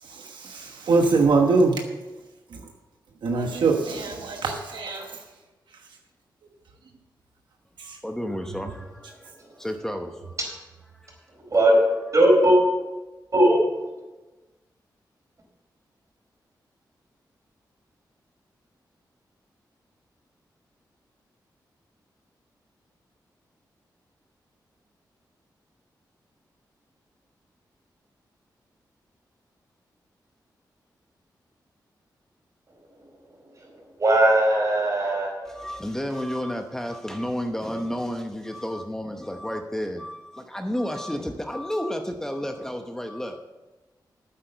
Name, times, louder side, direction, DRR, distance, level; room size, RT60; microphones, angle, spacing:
voice 1, 0.0-1.8 2.5-2.6 3.2-5.2 7.8-8.0, right 3 dB, 85° right, 2 dB, 1.2 m, -23 dB
voice 2, 7.8-10.4 10.9-11.2 35.4-43.4, equal, 5° left, 5 dB, 0.9 m, -31 dB
voice 3, 12.1-12.6 13.3-13.6 33.6-33.7 34.0-35.7, right 1 dB, 45° right, 0 dB, 4.3 m, -19 dB
9.3 x 8.3 x 6.7 m, 1.1 s
cardioid pair, 75°, 8 cm